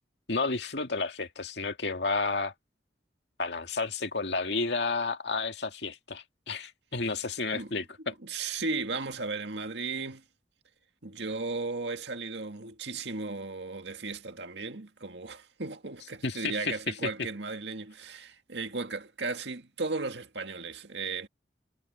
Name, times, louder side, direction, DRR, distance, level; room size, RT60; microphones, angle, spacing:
voice 1, 0.3-2.5 3.4-8.1 16.2-17.1, left 3 dB, 75° left, 2.1 m, -31 dB
voice 2, 8.1-10.2 11.0-21.3, right 3 dB, 75° right, 2.0 m, -35 dB
head